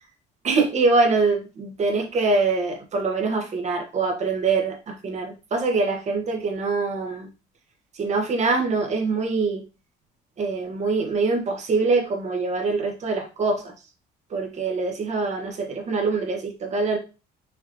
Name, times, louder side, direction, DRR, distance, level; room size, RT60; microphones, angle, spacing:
voice 1, 0.4-7.3 7.9-9.6 10.4-13.7 14.3-17.0, right 3 dB, 45° right, 1.1 m, -24 dB
5.5 x 2.8 x 2.7 m
cardioid pair, 110°, 17 cm